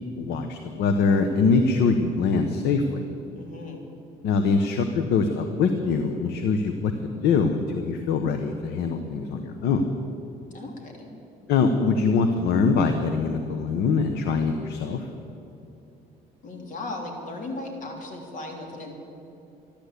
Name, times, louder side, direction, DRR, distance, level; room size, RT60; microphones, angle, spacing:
voice 1, 0.2-3.0 4.2-6.9 7.2-9.8 11.5-15.1, left 4 dB, 80° left, 6 dB, 1.1 m, -23 dB
voice 2, 3.4-3.8 10.5-11.1 16.4-18.9, left 2 dB, 50° left, 1 dB, 3.3 m, -36 dB
14.0 x 12.0 x 8.2 m, 2.8 s
cardioid pair, 110°, 17 cm